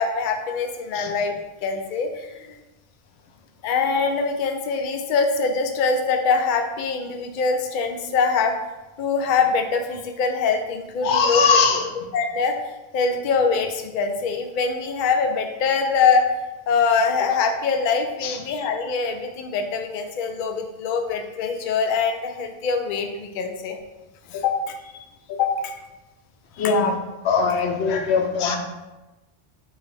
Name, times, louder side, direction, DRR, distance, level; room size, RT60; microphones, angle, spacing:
voice 1, 0.0-1.3 1.6-2.5 3.6-8.5 9.0-11.4 11.7-11.8 12.1-12.6 12.9-16.3 16.7-23.8 24.3-24.8 25.3-25.8 26.6-26.7, left 5 dB, 60° left, 4 dB, 0.6 m, -23 dB
voice 2, 11.0-11.9 18.2-18.4 26.6-27.0 27.2-28.6, left 5 dB, 85° left, 4 dB, 0.9 m, -20 dB
4.6 x 2.2 x 4.7 m, 1.1 s
omnidirectional pair, 1.1 m